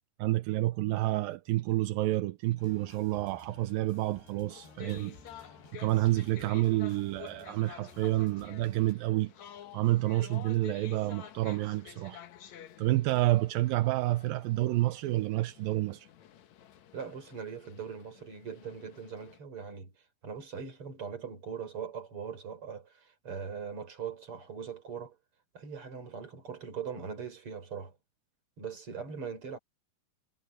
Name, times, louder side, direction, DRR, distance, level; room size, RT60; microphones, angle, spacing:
voice 1, 0.2-16.1, right 17 dB, 80° right, 2.2 m, -29 dB
sound 1, 2.6-8.9, left 3 dB, 80° left, 9.7 m, -56 dB
sound 2, 4.5-19.4, left 11 dB, 65° left, 1.9 m, -51 dB
voice 2, 16.9-19.9 20.2-25.2 25.5-27.9 28.6-29.6, right 6 dB, 35° right, 5.1 m, -41 dB
omnidirectional pair, 4.7 m